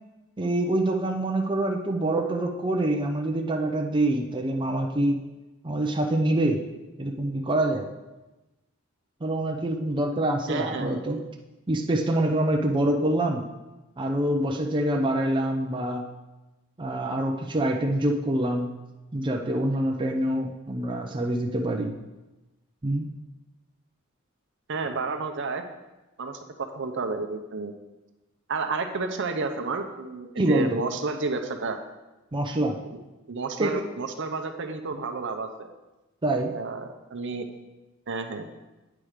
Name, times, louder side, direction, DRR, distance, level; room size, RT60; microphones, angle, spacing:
voice 1, 0.4-5.2 5.6-6.6 7.0-7.9 9.2-11.2 11.7-13.4 14.0-16.1 16.8-18.8 19.1-21.9 22.8-23.1 30.4-30.8 32.3-32.8 33.6-33.8 36.2-36.5, right 1 dB, 25° right, 2 dB, 0.5 m, -25 dB
voice 2, 10.5-11.0 12.7-13.1 24.7-25.6 26.2-27.7 28.5-31.8 32.9-33.0 33.3-35.7 36.4-37.5 38.1-38.5, right 4 dB, 60° right, 6 dB, 0.7 m, -31 dB
8.7 x 4.7 x 5.0 m, 1.1 s
head